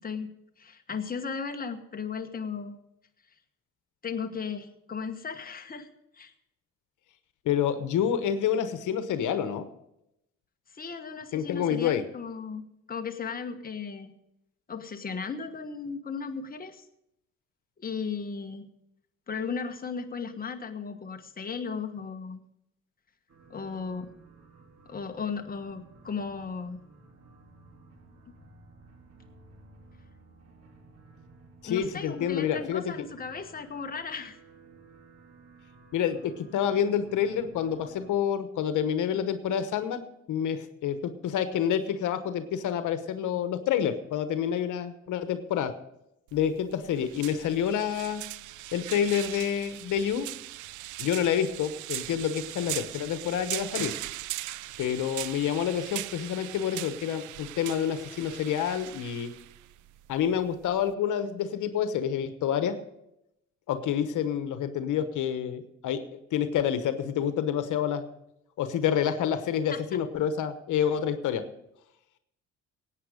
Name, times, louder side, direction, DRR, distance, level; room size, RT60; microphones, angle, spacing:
voice 1, 0.6-2.8 4.0-5.9 6.1-6.3 10.7-14.1 14.7-16.8 17.8-18.7 19.3-22.4 23.5-24.1 24.8-26.8 31.7-34.4 69.7-69.8, left 5 dB, 30° left, 5 dB, 1.3 m, -36 dB
voice 2, 7.4-9.7 11.3-12.0 31.6-32.9 35.9-40.0 40.3-45.7 46.3-48.2 48.7-50.3 51.0-53.9 54.8-59.3 60.1-62.8 63.7-68.0 68.6-71.4, left 9 dB, 80° left, 9 dB, 1.1 m, -28 dB
sound 1, 23.3-38.1, right 3 dB, 55° right, 2.3 m, -55 dB
sound 2, 46.3-60.9, right 16 dB, 80° right, 0.5 m, -39 dB
17.0 x 9.0 x 5.0 m, 0.83 s
cardioid pair, 90°, 30 cm